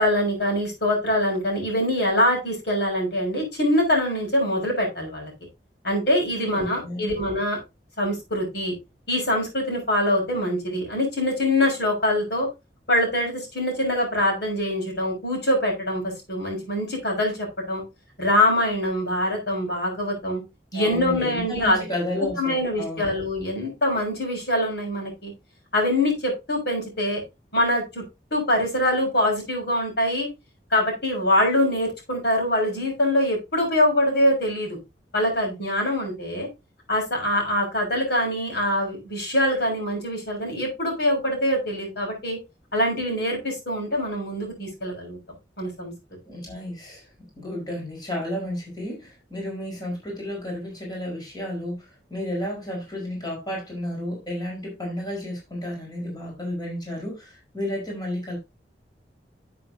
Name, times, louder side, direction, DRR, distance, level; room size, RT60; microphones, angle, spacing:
voice 1, 0.0-5.3 5.8-7.6 8.0-8.7 9.1-12.5 12.9-17.8 18.2-20.4 20.7-21.8 22.4-25.3 25.7-27.2 27.5-28.0 28.3-30.3 30.7-34.8 35.1-36.5 36.9-42.4 42.7-45.2 45.6-45.9, left 1 dB, 65° left, 6.2 m, -24 dB
voice 2, 6.5-7.1 20.7-23.1 46.2-58.4, left 1 dB, 25° left, 4.9 m, -32 dB
13.0 x 7.6 x 2.8 m
head